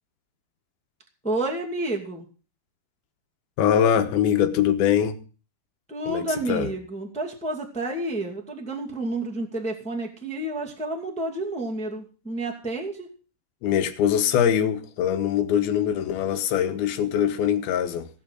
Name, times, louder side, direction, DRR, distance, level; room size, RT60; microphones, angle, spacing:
voice 1, 1.2-2.3 5.9-13.1, right 2 dB, 5° left, 1.2 m, -30 dB
voice 2, 3.6-5.2 6.1-6.7 13.6-18.1, left 9 dB, 80° left, 3.1 m, -23 dB
16.5 x 7.6 x 6.4 m
omnidirectional pair, 4.3 m